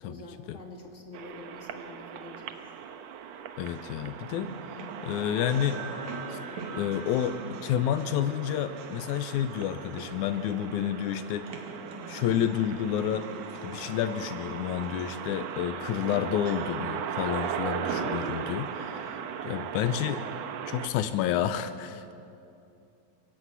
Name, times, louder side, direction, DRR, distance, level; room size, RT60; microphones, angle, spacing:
voice 1, 0.0-2.6 17.8-18.2, left 1 dB, 30° left, 2 dB, 1.3 m, -46 dB
sound 1, 1.1-20.9, right 8 dB, 75° right, 1.6 m, -38 dB
sound 2, 2.7-20.3, right 3 dB, 55° right, 3.4 m, -44 dB
voice 2, 3.6-4.5 5.0-5.8 6.3-6.4 6.8-11.6 12.1-13.3 13.6-19.2 19.4-20.2 20.7-22.1, left 10 dB, 90° left, 11 dB, 1.7 m, -30 dB
23.0 x 14.5 x 9.4 m, 2.7 s
omnidirectional pair, 4.3 m